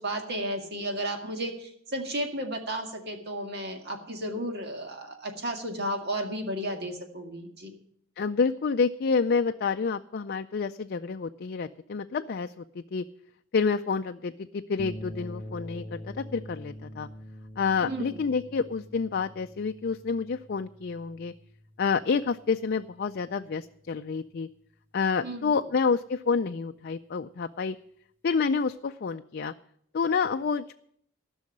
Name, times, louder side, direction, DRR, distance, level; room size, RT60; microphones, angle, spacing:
voice 1, 0.0-7.7 17.8-18.3 25.2-25.5, right 1 dB, 55° right, 3 dB, 2.0 m, -33 dB
voice 2, 8.2-13.0 13.5-17.1 17.6-21.3 21.8-24.5 24.9-27.8 28.2-29.5 29.9-30.7, left 5 dB, 50° left, 7 dB, 0.4 m, -28 dB
sound 1, 14.8-23.3, equal, 10° left, 0.8 m, -44 dB
14.5 x 6.3 x 9.8 m, 0.68 s
head